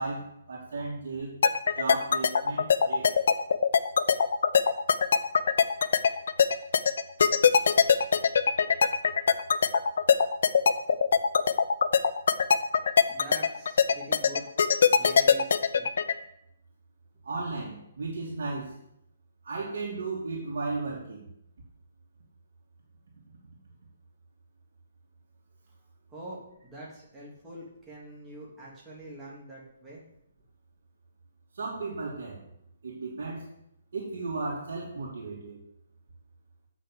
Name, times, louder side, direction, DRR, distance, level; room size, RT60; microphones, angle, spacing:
voice 1, 0.0-1.3 1.8-3.1 17.2-18.7 19.4-21.3 31.5-32.4 32.8-33.5 33.9-35.6, right 3 dB, 65° right, -5 dB, 2.7 m, -35 dB
sound 1, 1.4-16.1, left 6 dB, 60° left, 0.7 m, -21 dB
voice 2, 13.1-14.5 14.9-15.9 26.1-30.0, right 1 dB, 10° right, -5 dB, 2.6 m, -45 dB
8.2 x 6.3 x 7.6 m, 0.77 s
hypercardioid pair, 170°, 0 cm